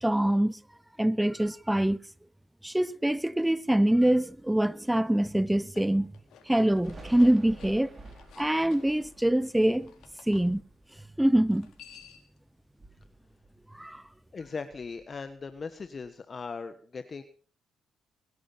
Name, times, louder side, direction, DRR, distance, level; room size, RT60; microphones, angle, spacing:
voice 1, 0.0-0.6 1.0-2.0 2.6-6.1 6.5-8.0 8.4-9.9 10.3-10.6 11.2-11.7 13.7-14.0, right 1 dB, 5° right, 0.7 m, -24 dB
sound 1, 5.5-10.5 11.5-12.4, left 8 dB, 75° left, 3.9 m, -54 dB
Thunder, 6.8-12.3 12.6-14.1 14.4-16.1, right 2 dB, 30° right, 5.2 m, -52 dB
voice 2, 14.3-17.2, left 4 dB, 35° left, 1.2 m, -39 dB
21.0 x 11.0 x 5.8 m
cardioid pair, 90°, 0 cm